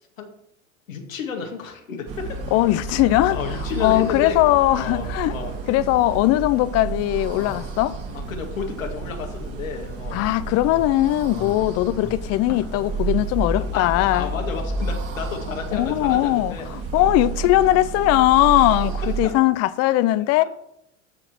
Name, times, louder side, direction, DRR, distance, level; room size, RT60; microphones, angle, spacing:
voice 1, 0.9-2.4 3.3-4.4 4.8-5.5 7.4-7.6 8.1-10.2 10.6-10.8 11.3-11.5 12.0-12.1 13.5-16.7 17.0-17.2 19.2-19.3, left 5 dB, 80° left, 2.2 m, -32 dB
sound 1, 2.1-19.3, right 4 dB, 35° right, 2.2 m, -31 dB
voice 2, 2.5-3.4 3.8-5.4 5.7-7.9 10.1-14.3 15.7-18.9 19.2-20.4, left 16 dB, 40° left, 0.6 m, -19 dB
13.5 x 4.9 x 6.0 m
hypercardioid pair, 90°, 39 cm